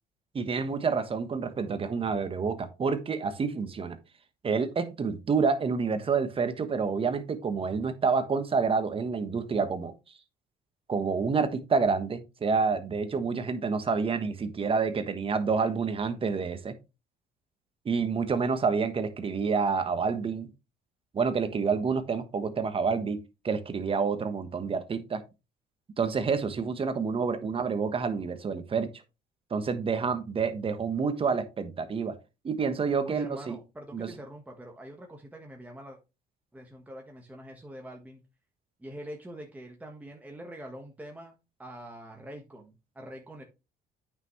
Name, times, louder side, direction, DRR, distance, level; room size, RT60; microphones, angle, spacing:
voice 1, 0.3-4.0 4.4-9.9 10.9-16.8 17.8-20.5 21.1-25.2 26.0-28.9 29.5-32.2 32.4-33.5 33.9-34.1, right 5 dB, 35° right, 1.2 m, -28 dB
voice 2, 33.0-36.0 36.5-38.2 38.8-43.4, right 1 dB, 10° right, 1.4 m, -44 dB
8.9 x 5.7 x 3.2 m
cardioid pair, 110°, 17 cm